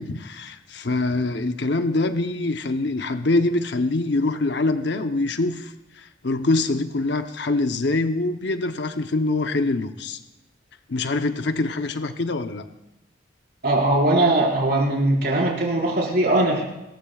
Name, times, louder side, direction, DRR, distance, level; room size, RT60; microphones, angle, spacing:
voice 1, 0.0-10.2 10.9-12.7, left 2 dB, 60° left, 7 dB, 0.8 m, -24 dB
voice 2, 13.6-16.6, right 1 dB, 55° right, -2 dB, 5.0 m, -20 dB
28.5 x 14.5 x 2.4 m, 0.94 s
head